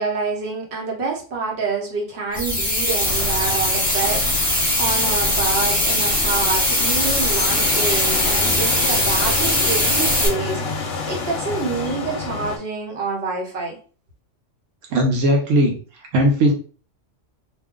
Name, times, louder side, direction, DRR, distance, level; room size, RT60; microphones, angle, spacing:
voice 1, 0.0-4.3 4.8-13.8, right 4 dB, 60° right, -1 dB, 1.1 m, -27 dB
sound 1, 2.3-10.3, left 1 dB, 5° left, 1.0 m, -20 dB
sound 2, 3.1-12.6, left 4 dB, 60° left, 0.8 m, -29 dB
voice 2, 14.9-15.8 16.1-16.5, equal, 85° right, 1 dB, 1.0 m, -17 dB
2.5 x 2.2 x 3.6 m, 0.38 s
omnidirectional pair, 1.3 m